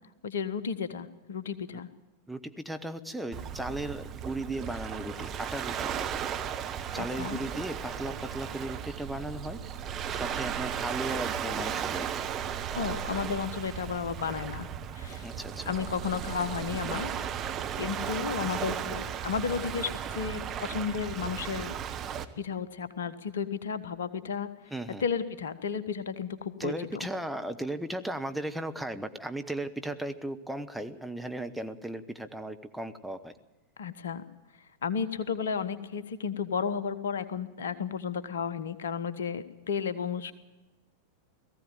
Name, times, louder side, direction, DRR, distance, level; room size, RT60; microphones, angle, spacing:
voice 1, 0.2-1.9 6.9-7.4 12.7-14.7 14.9-15.3 15.6-17.3 17.8-21.7 22.4-24.5 25.0-27.1 33.8-34.2 34.8-40.3, left 6 dB, 65° left, 13 dB, 1.2 m, -33 dB
voice 2, 2.3-6.0 6.9-9.6 10.1-12.2 15.2-15.7 24.7-25.0 26.6-33.3, right 1 dB, ahead, 6 dB, 1.0 m, -36 dB
Waves surf, 3.3-22.2, right 8 dB, 30° right, 1.2 m, -35 dB
19.0 x 15.0 x 9.2 m, 1.1 s
figure-of-eight pair, 90°, 0 cm